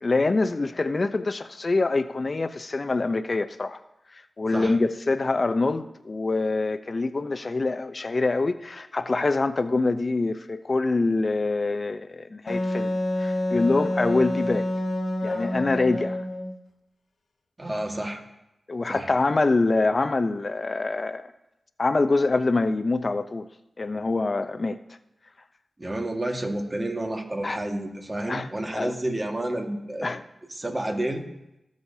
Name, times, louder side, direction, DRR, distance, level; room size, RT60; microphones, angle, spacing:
voice 1, 0.0-3.8 4.4-14.6 15.2-16.2 18.7-21.3 21.8-23.5 23.8-24.8 27.4-27.6 28.3-28.5 28.7-28.9 30.0-30.2, left 3 dB, 50° left, 0.6 m, -25 dB
Wind instrument woodwind instrument, 12.5-16.6, left 1 dB, 70° left, 1.4 m, -27 dB
voice 2, 17.6-18.2 18.9-19.1 25.8-30.1 30.5-31.2, right 1 dB, 30° right, 1.7 m, -30 dB
18.5 x 6.4 x 2.8 m
cardioid pair, 45°, 0 cm